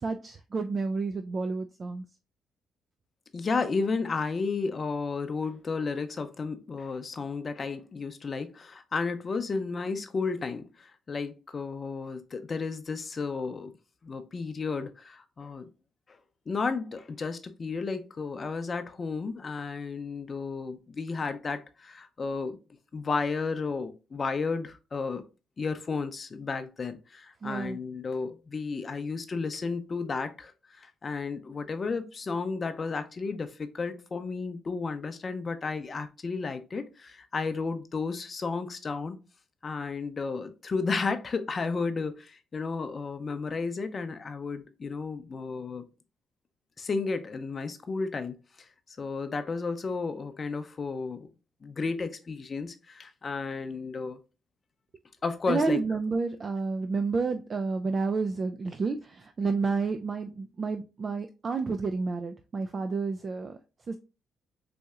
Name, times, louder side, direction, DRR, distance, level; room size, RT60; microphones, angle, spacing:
voice 1, 0.0-2.0 27.4-27.8 55.5-63.6 63.9-64.0, right 4 dB, 40° right, 0.3 m, -30 dB
voice 2, 3.3-13.7 14.0-15.7 16.5-22.6 22.9-25.2 25.6-30.5 30.8-39.2 39.6-45.8 46.8-48.4 49.0-51.3 51.6-54.2 55.2-55.8, left 4 dB, 40° left, 0.6 m, -33 dB
4.2 x 2.7 x 2.3 m
cardioid pair, 90°, 0 cm